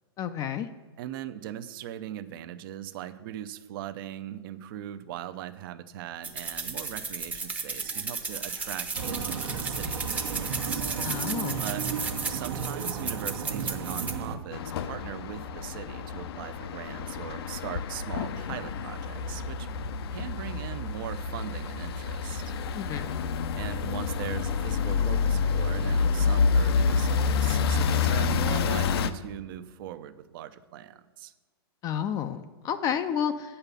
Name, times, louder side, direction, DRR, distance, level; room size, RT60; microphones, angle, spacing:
voice 1, 0.2-0.7 11.0-11.6 22.7-23.1 31.8-33.6, left 8 dB, 30° left, 9 dB, 0.4 m, -31 dB
voice 2, 1.0-10.8 11.6-11.8 12.3-19.8 20.1-22.5 23.6-31.3, right 11 dB, 55° right, 12 dB, 0.6 m, -40 dB
sound 1, 6.2-14.1, right 4 dB, 10° right, 0.7 m, -34 dB
sound 2, 8.9-14.4, right 5 dB, 80° right, 1.1 m, -34 dB
sound 3, 14.5-29.1, left 5 dB, 70° left, 0.6 m, -28 dB
8.0 x 5.6 x 6.9 m, 1.3 s
hypercardioid pair, 130°, 13 cm